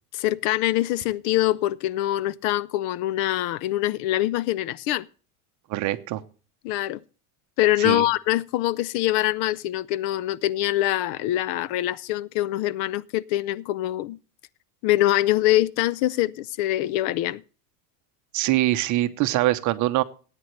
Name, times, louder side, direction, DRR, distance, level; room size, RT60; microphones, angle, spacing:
voice 1, 0.1-5.1 6.6-7.0 7.6-14.2 14.8-17.4, left 15 dB, 55° left, 0.5 m, -24 dB
voice 2, 5.7-6.2 7.8-8.0 18.3-20.0, right 16 dB, 40° right, 0.9 m, -23 dB
17.0 x 9.2 x 3.2 m
supercardioid pair, 145°, 46 cm